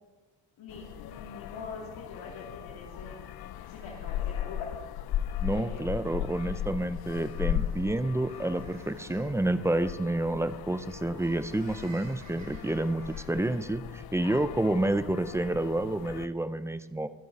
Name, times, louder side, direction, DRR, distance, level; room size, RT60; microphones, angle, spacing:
voice 1, 0.6-3.3 3.7-4.7 5.5-5.8 14.9-15.2, left 4 dB, 80° left, -2 dB, 3.0 m, -44 dB
sound 1, 0.7-16.3, left 11 dB, 55° left, 0.5 m, -37 dB
sound 2, 2.7-13.6, right 3 dB, 35° right, 3.8 m, -57 dB
voice 2, 5.4-17.1, right 1 dB, 5° right, 12 dB, 0.4 m, -29 dB
23.5 x 10.5 x 4.1 m, 1.3 s
cardioid pair, 150°, 47 cm